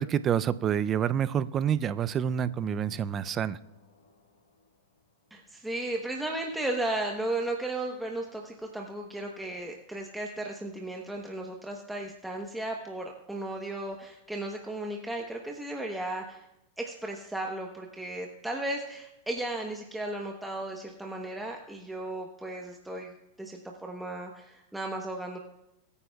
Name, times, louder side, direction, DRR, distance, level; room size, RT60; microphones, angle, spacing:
voice 1, 0.0-3.6, right 9 dB, 25° right, 15 dB, 0.4 m, -28 dB
sound 1, 1.5-5.3, left 8 dB, 85° left, 4.0 m, -51 dB
voice 2, 5.3-16.5 16.8-23.1 23.4-25.4, right 2 dB, 5° right, 0 dB, 1.0 m, -35 dB
23.0 x 9.7 x 2.3 m, 0.92 s
supercardioid pair, 135°, 0 cm